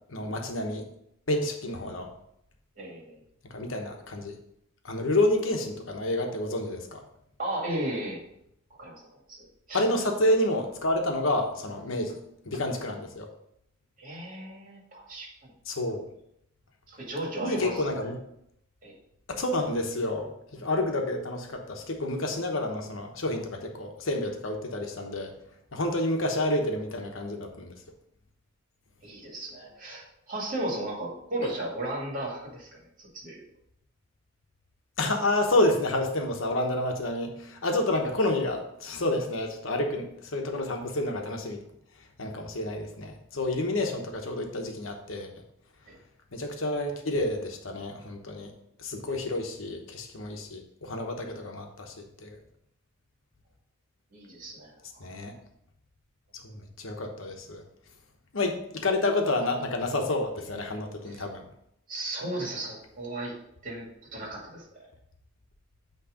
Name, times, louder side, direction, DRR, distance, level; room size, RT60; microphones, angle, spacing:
voice 1, 0.1-0.8 1.3-2.1 3.5-4.3 4.8-7.0 9.7-12.2 12.4-13.3 15.7-16.1 17.4-18.2 19.4-25.3 25.7-27.7 35.0-41.6 42.2-45.3 46.3-48.5 48.8-51.9 52.2-52.4 55.0-55.3 56.4-57.6 58.3-61.4, left 1 dB, 80° left, 3 dB, 1.1 m, -29 dB
voice 2, 2.8-3.2 7.4-8.2 8.8-9.4 9.7-9.8 14.0-15.5 16.9-18.1 18.8-18.9 29.0-33.4 45.9-46.0 54.1-55.0 61.1-61.2 61.9-63.3 63.6-64.9, right 1 dB, 45° right, -2 dB, 2.2 m, -35 dB
8.7 x 3.2 x 5.0 m, 0.76 s
head